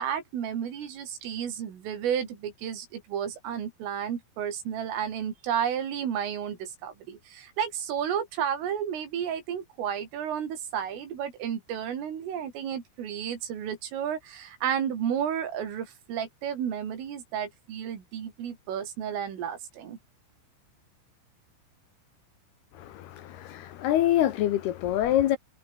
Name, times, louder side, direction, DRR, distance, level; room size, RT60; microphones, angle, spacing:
voice 1, 0.0-20.0, right 8 dB, 80° right, 6.3 m, -32 dB
voice 2, 22.8-25.4, left 12 dB, 70° left, 2.7 m, -25 dB
omnidirectional pair, 5.7 m